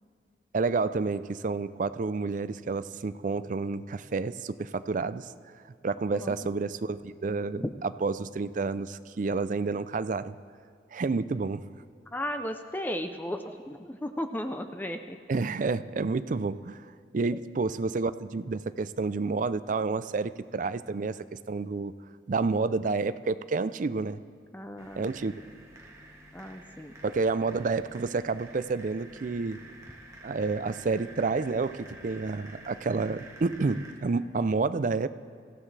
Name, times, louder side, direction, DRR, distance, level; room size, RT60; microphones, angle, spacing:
voice 1, 0.5-5.3 5.8-10.4 10.9-11.8 15.3-16.8 17.1-21.9 22.3-24.2 24.9-25.3 27.0-29.6 30.2-35.1, right 4 dB, 45° right, 13 dB, 0.4 m, -29 dB
voice 2, 6.1-6.5 7.6-7.7 12.1-15.2 24.5-25.0 26.3-26.9, left 1 dB, 10° left, 7 dB, 0.5 m, -35 dB
sound 1, 24.8-33.9, right 1 dB, 20° right, 1.6 m, -49 dB
25.5 x 14.5 x 3.3 m, 2.2 s
head